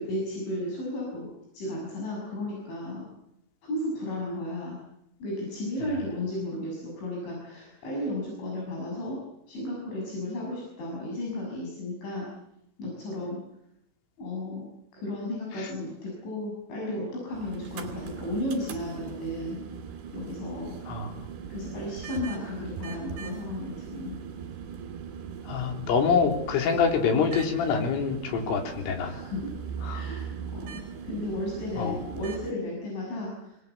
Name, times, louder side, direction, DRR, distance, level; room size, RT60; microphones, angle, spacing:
voice 1, 0.0-3.1 3.6-4.8 5.2-9.2 9.5-12.3 12.8-13.4 14.2-19.6 20.1-20.8 21.5-24.1 29.0-29.5 29.9-33.6, left 1 dB, 70° left, -2 dB, 9.0 m, -34 dB
sound 1, 17.3-32.5, right 7 dB, 60° right, 4.4 m, -39 dB
voice 2, 25.5-29.1 29.8-30.0 31.8-32.0, left 6 dB, 90° left, 3 dB, 5.9 m, -25 dB
27.5 x 20.5 x 8.2 m, 0.80 s
omnidirectional pair, 5.6 m